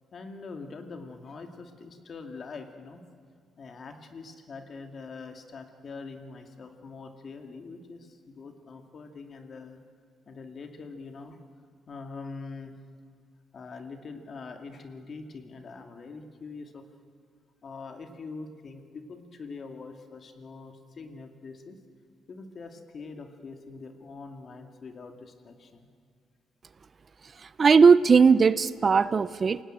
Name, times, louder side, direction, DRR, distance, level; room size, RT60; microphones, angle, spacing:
voice 1, 0.1-3.0 3.6-9.8 10.3-11.4 11.9-12.7 13.5-16.8 17.6-21.8 22.3-25.9, left 4 dB, 50° left, 5 dB, 2.4 m, -43 dB
voice 2, 27.6-29.6, right 5 dB, 40° right, 17 dB, 0.5 m, -18 dB
27.5 x 18.0 x 9.0 m, 2.2 s
cardioid pair, 90°, 0 cm